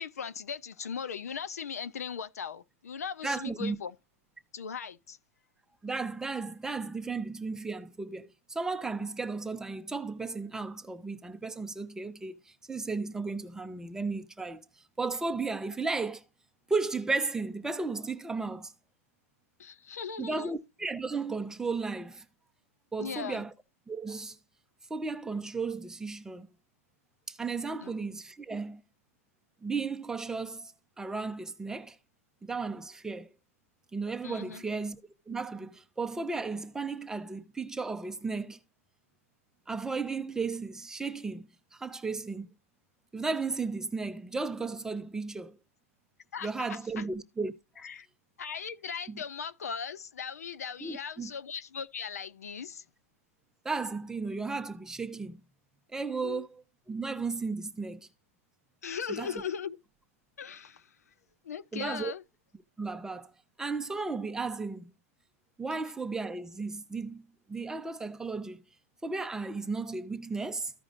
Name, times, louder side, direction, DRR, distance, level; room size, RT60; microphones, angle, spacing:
voice 1, 0.0-3.9 4.5-5.2 19.6-20.5 23.0-23.4 27.8-27.9 34.2-34.6 46.3-47.0 47.8-48.1 48.4-52.8 56.2-56.5 58.8-59.8 60.4-60.9 61.4-62.2, left 7 dB, 85° left, 0.6 m, -38 dB
voice 2, 3.2-3.8 5.8-14.6 15.0-16.2 16.7-18.7 20.2-22.2 22.9-23.5 23.9-24.4 24.9-26.5 27.3-28.8 29.6-32.0 32.4-33.3 33.9-35.0 35.3-38.6 39.7-42.5 43.1-45.6 46.4-47.9 49.1-49.2 50.8-51.3 53.6-55.4 55.9-58.1 59.1-59.4 61.7-62.1 62.8-63.3 63.6-64.8 65.6-68.6 69.0-70.7, right 4 dB, 5° right, 0.7 m, -34 dB
14.5 x 5.0 x 2.5 m
hypercardioid pair, 120°, 8 cm